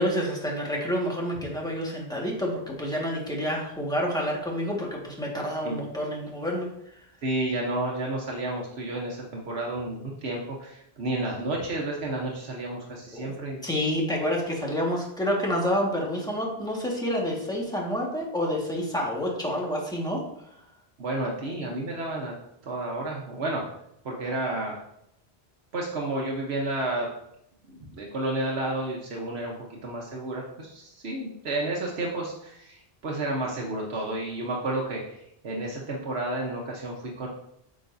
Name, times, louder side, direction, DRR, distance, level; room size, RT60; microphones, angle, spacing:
voice 1, 0.0-6.7 13.1-13.3 13.6-20.2, equal, 5° left, -2 dB, 1.6 m, -28 dB
voice 2, 7.2-13.6 21.0-22.3 22.6-23.6 24.0-24.8 25.7-27.1 27.7-29.5 29.8-37.3, right 2 dB, 80° right, -1 dB, 1.3 m, -31 dB
9.1 x 6.2 x 2.7 m, 0.78 s
omnidirectional pair, 1.1 m